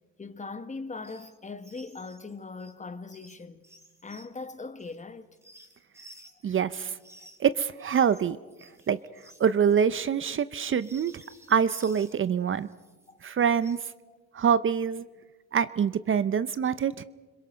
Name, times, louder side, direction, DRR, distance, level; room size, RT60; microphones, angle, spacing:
voice 1, 0.2-3.6 4.0-5.3 6.4-6.6 13.1-13.2 14.1-14.2, left 3 dB, 25° left, 1.2 m, -40 dB
sound 1, 1.0-1.3 1.6-6.6 7.0-12.2 12.6-13.9, right 1 dB, 10° right, 2.9 m, -55 dB
voice 2, 6.4-6.9 7.4-8.4 8.9-9.0 9.4-11.2 11.5-12.7 13.2-13.8 14.3-15.0 15.5-17.0, right 7 dB, 40° right, 0.6 m, -25 dB
30.0 x 22.0 x 5.2 m
cardioid pair, 90°, 30 cm